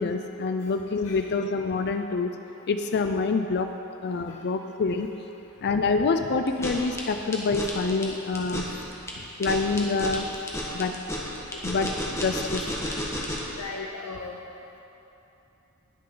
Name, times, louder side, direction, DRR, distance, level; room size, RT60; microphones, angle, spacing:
voice 1, 0.0-2.3 2.7-3.7 4.0-5.1 5.6-8.6 9.4-10.3 10.7-10.9 11.6-11.9 12.2-12.6, left 4 dB, 50° left, 6 dB, 0.4 m, -26 dB
sound 1, 6.5-13.6, left 1 dB, 15° left, 1.4 m, -32 dB
voice 2, 11.5-12.2 13.5-14.4, left 3 dB, 80° left, 0 dB, 0.8 m, -39 dB
19.5 x 6.7 x 3.9 m, 2.9 s
head